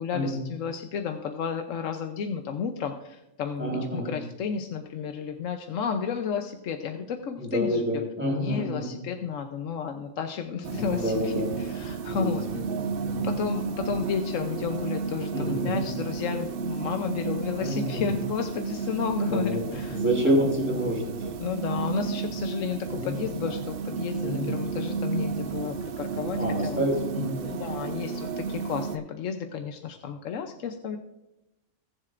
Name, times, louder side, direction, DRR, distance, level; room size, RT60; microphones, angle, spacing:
voice 1, 0.0-7.8 8.3-12.4 13.2-20.0 20.2-20.4 21.4-26.8 27.5-31.0, left 6 dB, 80° left, 5 dB, 1.1 m, -32 dB
voice 2, 3.6-4.1 7.4-8.9 10.8-11.5 12.1-13.3 15.3-15.9 17.6-18.2 19.3-19.6 19.9-21.3 22.9-23.2 24.2-24.5 26.4-27.6, equal, 10° right, -2 dB, 3.7 m, -28 dB
sound 1, 10.6-29.0, right 5 dB, 60° right, 0.7 m, -32 dB
21.0 x 7.5 x 2.5 m, 0.93 s
omnidirectional pair, 1.3 m